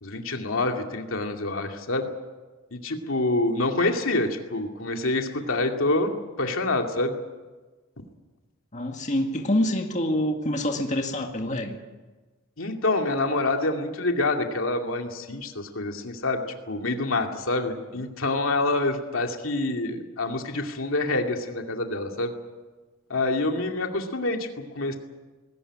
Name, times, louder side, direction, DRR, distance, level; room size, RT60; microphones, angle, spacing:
voice 1, 0.0-2.1 2.7-7.1 12.6-22.3 23.1-25.0, left 2 dB, 85° left, 3 dB, 2.4 m, -27 dB
voice 2, 8.7-11.8, left 1 dB, 35° left, 3 dB, 2.0 m, -26 dB
20.0 x 17.5 x 10.0 m, 1.3 s
head